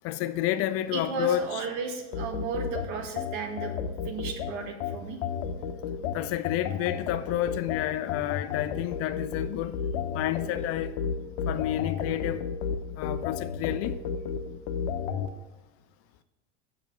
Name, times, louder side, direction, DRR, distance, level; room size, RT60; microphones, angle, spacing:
voice 1, 0.0-1.6 6.1-9.7 10.1-10.9 11.5-12.5 13.0-14.0, left 13 dB, 45° left, 0.5 m, -30 dB
voice 2, 0.9-3.7 4.0-5.2, right 5 dB, 55° right, 1.8 m, -34 dB
sound 1, 2.1-15.3, left 7 dB, 65° left, 0.9 m, -32 dB
7.1 x 6.0 x 6.6 m
supercardioid pair, 110°, 34 cm